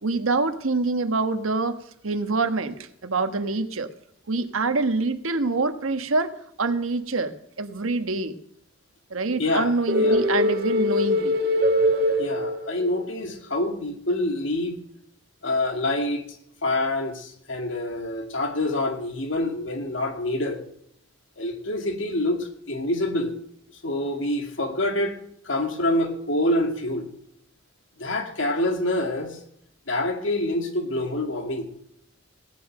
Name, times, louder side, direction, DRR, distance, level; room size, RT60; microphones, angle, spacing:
voice 1, 0.0-1.8 2.0-2.8 3.0-3.9 4.3-6.3 6.6-7.3 7.6-8.4 9.1-11.3, right 3 dB, 90° right, 9 dB, 1.2 m, -25 dB
voice 2, 9.4-10.3 12.2-14.8 15.4-16.2 16.6-20.6 21.4-23.4 23.8-25.2 25.4-27.1 28.0-29.4 29.9-31.7, left 1 dB, 65° left, 5 dB, 2.2 m, -26 dB
sound 1, 9.9-13.1, left 1 dB, 50° right, 1.7 m, -22 dB
16.5 x 9.8 x 6.5 m, 0.72 s
head